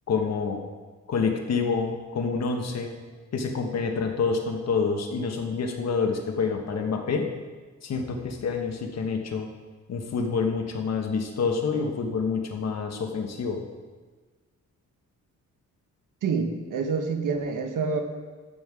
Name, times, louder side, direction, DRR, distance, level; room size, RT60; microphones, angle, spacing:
voice 1, 0.1-0.6 1.1-2.9 3.3-7.3 7.8-9.5 9.9-13.6, left 5 dB, 55° left, 4 dB, 1.2 m, -27 dB
voice 2, 16.2-18.0, right 5 dB, 85° right, 5 dB, 1.1 m, -27 dB
14.0 x 5.4 x 4.8 m, 1.4 s
cardioid pair, 135°, 31 cm